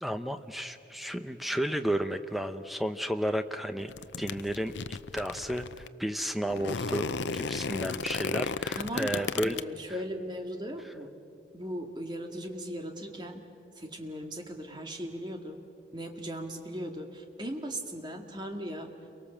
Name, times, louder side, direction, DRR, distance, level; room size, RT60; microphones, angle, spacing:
voice 1, 0.0-3.9 4.2-9.6, equal, ahead, 8 dB, 0.8 m, -32 dB
sound 1, 3.8-5.9 6.5-9.6, left 5 dB, 75° left, 0.6 m, -34 dB
voice 2, 8.7-11.1 11.5-13.4 13.8-15.6 15.9-18.9, equal, 25° right, 3 dB, 2.0 m, -38 dB
29.5 x 23.5 x 7.3 m, 2.6 s
head